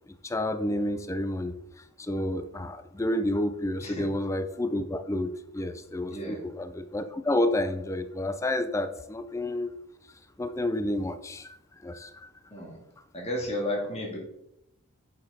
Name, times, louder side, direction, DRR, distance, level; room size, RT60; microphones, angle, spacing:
voice 1, 0.2-1.6 2.0-9.7 10.4-11.5 11.8-12.3, left 1 dB, 15° left, 10 dB, 0.4 m, -30 dB
voice 2, 13.1-14.2, left 1 dB, 30° left, -1 dB, 2.0 m, -32 dB
6.7 x 6.5 x 5.3 m, 0.81 s
head